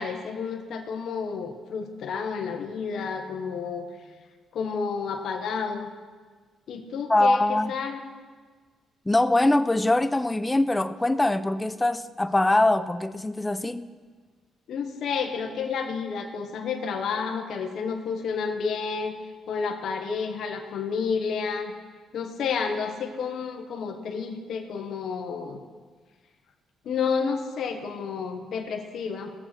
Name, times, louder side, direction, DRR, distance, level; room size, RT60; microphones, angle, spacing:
voice 1, 0.0-3.9 4.5-5.9 6.7-8.0 14.7-19.1 19.5-21.8 22.1-25.6 26.8-29.3, left 5 dB, 70° left, 1.2 m, -30 dB
voice 2, 7.1-7.7 9.1-13.9, left 2 dB, 15° left, 0.6 m, -23 dB
18.5 x 7.5 x 4.5 m
cardioid pair, 90°, 0 cm